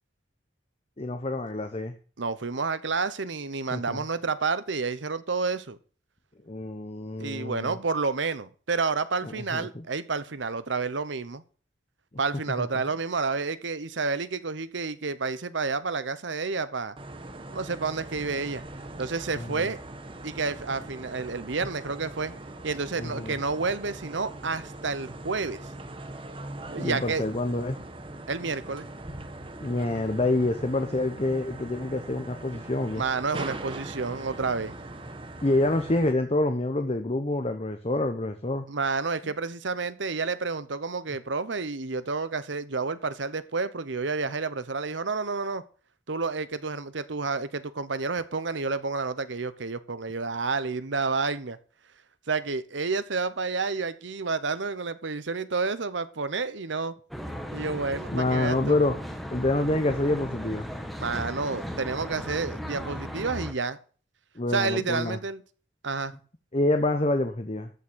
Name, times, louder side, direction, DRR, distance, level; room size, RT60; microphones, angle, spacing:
voice 1, 1.0-1.9 3.7-4.0 6.5-7.8 9.2-9.8 12.6-12.7 19.3-19.7 23.0-23.4 26.8-27.8 29.6-33.0 35.4-38.6 39.2-39.3 58.1-59.0 59.3-60.7 64.3-65.2 66.5-67.7, left 2 dB, 35° left, 0.9 m, -27 dB
voice 2, 2.2-5.8 7.2-11.4 12.2-17.0 17.5-18.6 19.0-19.8 20.2-22.3 22.6-25.6 26.7-27.2 28.3-28.9 33.0-34.7 38.7-45.6 46.1-51.6 52.3-56.9 57.5-58.8 61.0-63.8 64.5-65.4 65.8-66.1, right 4 dB, 75° right, 1.0 m, -30 dB
sound 1, 17.0-36.1, right 2 dB, 30° right, 1.2 m, -41 dB
Traffic noise roadway noise, 57.1-63.5, equal, ahead, 1.4 m, -36 dB
14.0 x 6.2 x 6.3 m
head